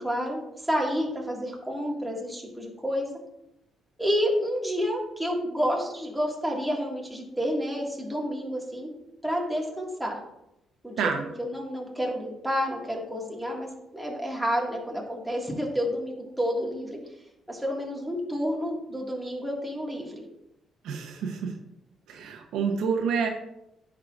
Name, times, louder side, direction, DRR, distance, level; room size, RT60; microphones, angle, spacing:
voice 1, 0.0-3.1 4.0-8.9 9.2-10.2 10.8-11.1 11.4-17.0 17.5-20.3, equal, 5° right, -2 dB, 1.8 m, -29 dB
voice 2, 20.8-21.5 22.1-23.3, right 6 dB, 85° right, 3 dB, 0.8 m, -28 dB
9.8 x 4.7 x 2.4 m, 0.84 s
cardioid pair, 90°, 0 cm